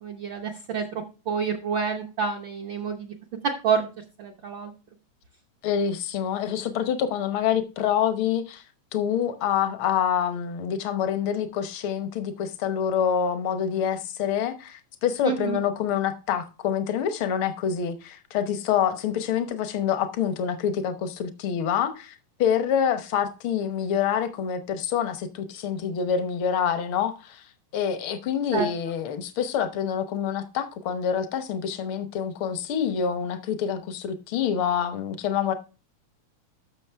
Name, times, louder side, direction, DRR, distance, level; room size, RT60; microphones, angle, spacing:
voice 1, 0.0-3.1 3.4-3.9 4.2-4.7 15.2-15.6 28.5-28.7, right 6 dB, 80° right, 1.0 m, -28 dB
voice 2, 5.6-8.6 8.9-27.4 27.7-35.5, left 8 dB, 75° left, 1.2 m, -26 dB
13.0 x 6.2 x 3.4 m
omnidirectional pair, 3.7 m